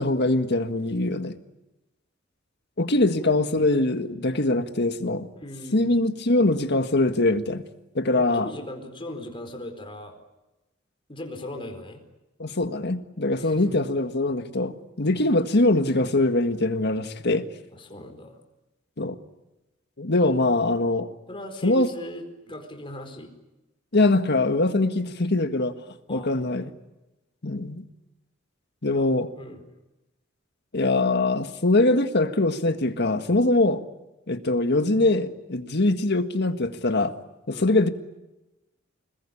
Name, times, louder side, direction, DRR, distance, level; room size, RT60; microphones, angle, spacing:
voice 1, 0.0-1.4 2.8-5.3 5.7-7.6 8.0-8.5 12.4-17.5 19.0-19.2 20.0-21.1 21.6-21.9 23.9-25.8 26.1-26.7 27.4-27.8 28.8-29.3 30.7-33.8 34.3-37.1 37.5-37.9, left 2 dB, 55° left, 1.7 m, -23 dB
voice 2, 5.4-6.0 8.0-10.2 11.1-12.0 13.4-13.8 15.0-15.2 17.7-18.4 21.3-23.3 26.1-26.7 28.9-29.6 37.5-37.7, left 1 dB, 25° left, 4.5 m, -39 dB
26.5 x 21.0 x 10.0 m
head